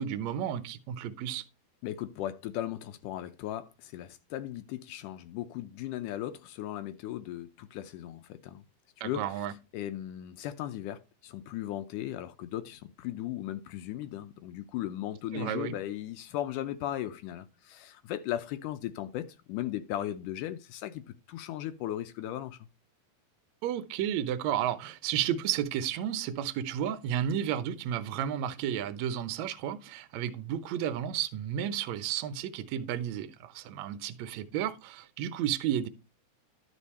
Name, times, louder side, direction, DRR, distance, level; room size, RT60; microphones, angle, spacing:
voice 1, 0.0-1.4 9.0-9.5 15.3-15.7 23.6-35.9, right 10 dB, 70° right, 1.8 m, -32 dB
voice 2, 1.8-8.6 9.0-9.3 9.7-22.7, left 12 dB, 80° left, 2.1 m, -37 dB
11.5 x 5.3 x 4.2 m
omnidirectional pair, 3.7 m